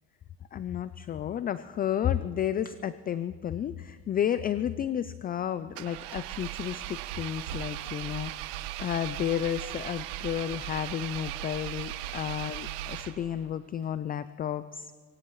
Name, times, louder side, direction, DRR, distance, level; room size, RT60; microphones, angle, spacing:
voice 1, 0.5-8.3 8.8-15.0, left 10 dB, 25° left, 14 dB, 0.3 m, -32 dB
Engine, 5.7-13.5, right 13 dB, 85° right, 0.8 m, -38 dB
22.5 x 17.0 x 3.1 m, 1.5 s
supercardioid pair, 100°, 36 cm